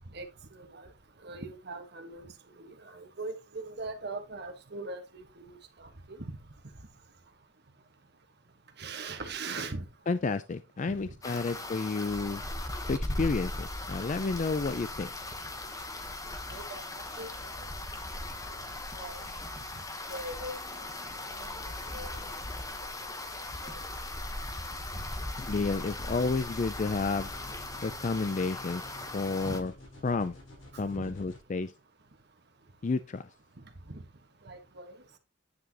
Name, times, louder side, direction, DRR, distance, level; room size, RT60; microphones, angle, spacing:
voice 1, 0.5-0.9 1.2-6.4 8.8-9.9 10.9-11.1 16.5-17.7 18.9-19.3 20.1-20.9 21.3-22.3 23.6-23.8 24.9-25.1 29.4-29.6 30.7-31.1 33.6-34.0 34.4-34.9, right 3 dB, 55° right, 1.4 m, -41 dB
voice 2, 10.1-12.4 12.9-15.1 25.4-27.3 27.8-28.8 29.1-29.7 30.0-30.4 30.8-31.7 32.8-33.3, left 4 dB, 40° left, 0.4 m, -31 dB
sound 1, 11.2-29.6, left 2 dB, 15° left, 1.1 m, -38 dB
sound 2, 27.0-31.4, left 1 dB, 80° left, 4.1 m, -50 dB
9.5 x 6.1 x 2.9 m
head